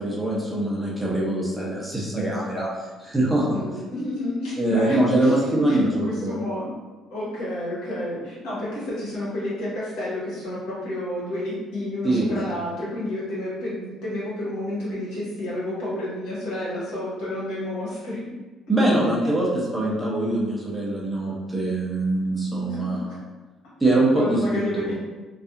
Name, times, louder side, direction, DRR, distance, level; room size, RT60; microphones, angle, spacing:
voice 1, 0.0-2.7 3.0-3.5 4.6-6.4 12.0-12.6 18.7-23.0 23.8-24.4 24.9-25.0, right 1 dB, 5° right, -5 dB, 0.5 m, -23 dB
voice 2, 3.5-6.7 7.1-18.2 22.7-23.1 24.1-24.9, left 1 dB, 90° left, -8 dB, 1.2 m, -30 dB
2.6 x 2.3 x 2.4 m, 1.2 s
cardioid pair, 150°, 0 cm